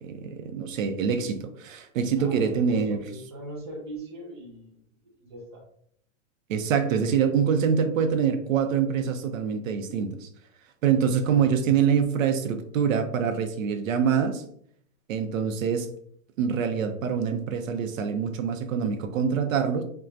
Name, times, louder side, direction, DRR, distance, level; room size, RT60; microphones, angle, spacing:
voice 1, 0.0-3.0 6.5-10.3 10.8-14.4 15.1-15.9 16.4-19.8, right 7 dB, 90° right, 7 dB, 0.7 m, -25 dB
voice 2, 2.2-4.8 5.0-5.6 11.3-11.8, right 1 dB, 25° right, -3 dB, 0.3 m, -41 dB
4.4 x 2.3 x 2.5 m, 0.65 s
supercardioid pair, 180°, 38 cm